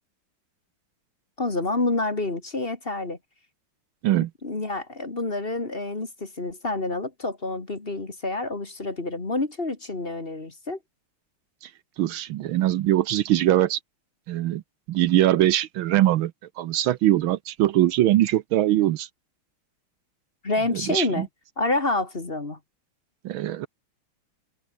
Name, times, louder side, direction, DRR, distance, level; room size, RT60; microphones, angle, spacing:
voice 1, 1.4-3.2 4.4-10.8 20.4-21.3 21.6-22.6, left 2 dB, 25° left, 2.3 m, -28 dB
voice 2, 12.0-13.8 14.3-14.6 14.9-16.3 16.6-19.1 20.7-21.3 23.2-23.7, right 13 dB, 75° right, 1.5 m, -22 dB
omnidirectional pair, 2.4 m